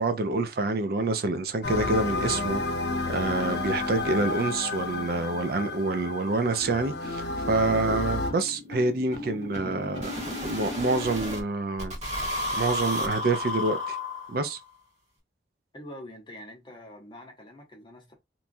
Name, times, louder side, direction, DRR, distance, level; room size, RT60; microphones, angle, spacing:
voice 1, 0.0-2.6 3.1-10.1 10.4-11.9 12.6-14.0 14.3-14.6, right 3 dB, 55° right, 0.4 m, -27 dB
sound 1, 1.6-8.3, left 2 dB, 70° left, 0.6 m, -31 dB
sound 2, 5.4-5.5 5.8-5.9 6.2-11.4 11.8-14.6, left 1 dB, 40° right, 1.4 m, -34 dB
voice 2, 15.7-18.1, left 1 dB, 25° left, 0.9 m, -45 dB
3.0 x 2.2 x 2.5 m
head